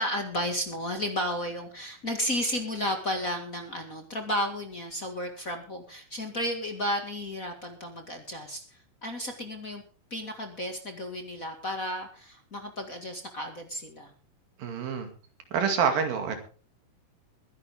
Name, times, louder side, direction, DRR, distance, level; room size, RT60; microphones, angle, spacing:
voice 1, 0.0-8.6 9.0-9.8 10.1-14.1, equal, 30° left, 4 dB, 1.8 m, -33 dB
voice 2, 14.6-15.1 15.5-16.4, right 6 dB, 90° right, 6 dB, 4.1 m, -26 dB
22.0 x 10.5 x 3.6 m, 0.38 s
omnidirectional pair, 3.9 m